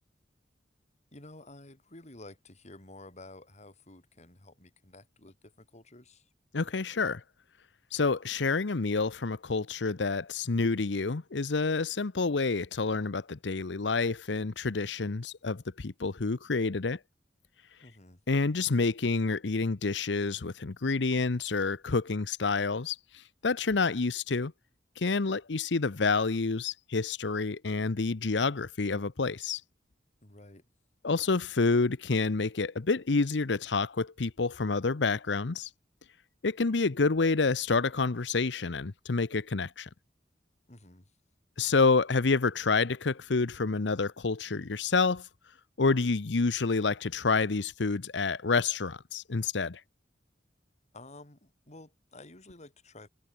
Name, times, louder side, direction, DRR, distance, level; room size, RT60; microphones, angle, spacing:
voice 1, 1.1-6.3 17.8-18.2 30.2-30.7 40.7-41.1 50.9-53.1, left 2 dB, 40° left, 4.2 m, -51 dB
voice 2, 6.5-7.2 7.9-17.0 18.3-23.0 23.4-24.5 25.0-29.6 31.0-35.7 36.4-39.9 41.6-45.3 45.8-49.8, left 4 dB, 90° left, 0.8 m, -28 dB
head